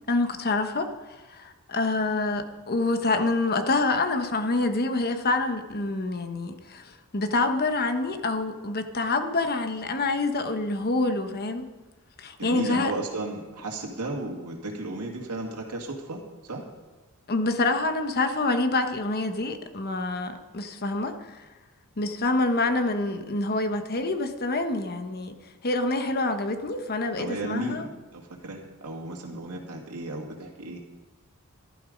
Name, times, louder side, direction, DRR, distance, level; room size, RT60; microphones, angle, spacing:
voice 1, 0.1-0.9 1.3-11.6 12.2-12.9 17.3-21.4 22.0-25.3 25.6-27.9, left 2 dB, 45° left, 7 dB, 1.1 m, -26 dB
voice 2, 12.4-16.6 27.2-30.8, right 2 dB, 90° right, 0 dB, 2.1 m, -34 dB
15.0 x 11.5 x 5.2 m, 1.2 s
head